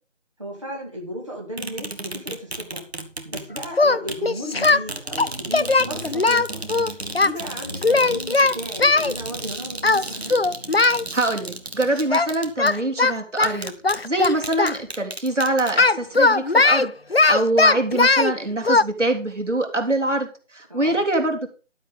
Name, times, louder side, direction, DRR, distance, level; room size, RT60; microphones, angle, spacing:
voice 1, 0.4-2.8 3.2-6.7 7.2-10.4 20.7-21.1, equal, 25° right, -2 dB, 2.1 m, -35 dB
sound 1, 1.6-3.7 4.1-4.2 4.6-12.8 13.4-14.0 14.2-15.7, right 2 dB, 55° right, 2.2 m, -34 dB
Singing, 3.7-4.8 5.2-7.3 7.8-9.1 9.8-10.0 10.3-11.0 12.1-12.3 12.6-14.8 15.8-18.3 18.6-18.8, left 3 dB, 55° left, 0.5 m, -18 dB
voice 2, 11.1-13.8 14.0-16.9 17.2-21.5, right 2 dB, 70° right, 3 dB, 3.4 m, -24 dB
12.5 x 7.5 x 5.2 m, 0.33 s
figure-of-eight pair, 175°, 37 cm